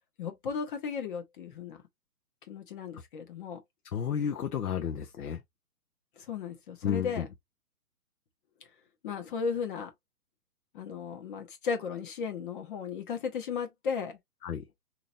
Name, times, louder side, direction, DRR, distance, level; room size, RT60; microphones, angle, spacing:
voice 1, 0.2-1.8 2.5-3.6 6.2-7.3 9.0-9.9 10.7-14.2, left 6 dB, 35° left, 0.9 m, -35 dB
voice 2, 3.9-5.4 6.8-7.3 14.4-14.6, left 8 dB, 70° left, 0.8 m, -32 dB
4.0 x 2.9 x 2.5 m
hypercardioid pair, 135°, 47 cm